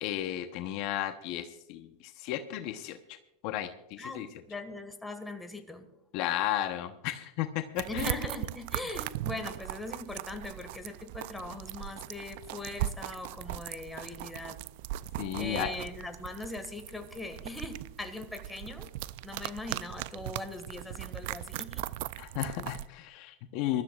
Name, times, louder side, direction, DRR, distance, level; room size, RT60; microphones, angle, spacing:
voice 1, 0.0-1.9 2.2-3.0 3.4-4.3 6.1-8.2 15.2-15.7 22.2-23.8, left 12 dB, 55° left, 8 dB, 0.9 m, -33 dB
voice 2, 4.0-5.9 7.8-14.6 15.3-18.9 19.2-21.9, left 2 dB, 10° left, 6 dB, 1.8 m, -40 dB
sound 1, 7.8-22.9, right 15 dB, 65° right, 0.4 m, -39 dB
22.5 x 13.0 x 2.4 m, 0.82 s
hypercardioid pair, 110°, 0 cm